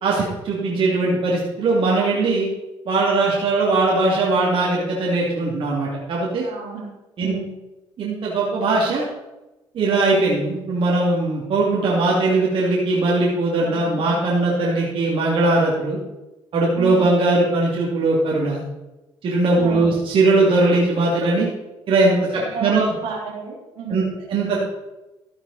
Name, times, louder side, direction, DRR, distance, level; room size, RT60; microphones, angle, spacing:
voice 1, 0.0-2.5 2.9-6.5 7.2-7.3 8.0-9.0 9.7-16.0 16.5-18.6 19.2-21.5 21.9-22.9 23.9-24.6, right 2 dB, 60° right, -5 dB, 2.9 m, -20 dB
voice 2, 6.4-7.6 13.6-14.2 16.8-17.1 19.6-19.9 22.3-24.1, right 5 dB, 80° right, -2 dB, 3.8 m, -32 dB
13.5 x 8.7 x 4.3 m, 1.0 s
cardioid pair, 85°, 10 cm